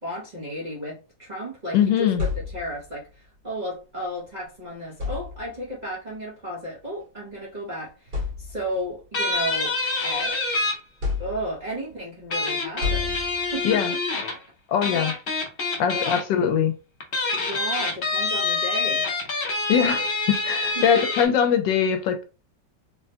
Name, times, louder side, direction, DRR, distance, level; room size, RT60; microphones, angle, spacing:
voice 1, 0.0-9.8 10.0-10.5 11.2-13.8 15.9-16.2 17.3-19.1 20.7-21.1, equal, 40° right, 0.6 m, -34 dB
voice 2, 1.7-2.3 13.6-13.9 14.7-15.1 15.8-16.7 19.7-22.2, left 8 dB, 80° left, 1.3 m, -22 dB
sound 1, 2.2-3.0 4.2-4.4 4.9-5.7 6.8-7.0 7.5-7.6 8.1-8.9 9.4-10.4 11.0-11.8 12.8-13.7, left 5 dB, 65° right, 1.9 m, -31 dB
sound 2, 9.1-10.7 12.3-14.4 14.8-16.2 17.0-21.3, left 3 dB, 65° left, 0.5 m, -26 dB
3.8 x 2.1 x 2.8 m
omnidirectional pair, 2.0 m